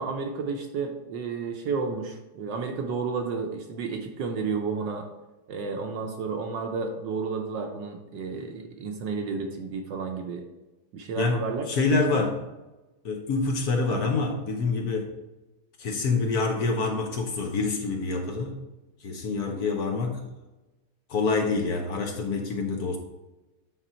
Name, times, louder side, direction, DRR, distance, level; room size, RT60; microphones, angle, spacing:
voice 1, 0.0-5.1 5.5-10.4 10.9-11.7 12.1-12.3, right 5 dB, 65° right, 3 dB, 1.2 m, -31 dB
voice 2, 11.2-12.4 13.0-15.1 15.8-18.6 19.0-20.3 21.1-23.0, left 3 dB, 60° left, 2 dB, 1.1 m, -26 dB
9.1 x 3.8 x 4.3 m, 1.1 s
omnidirectional pair, 2.3 m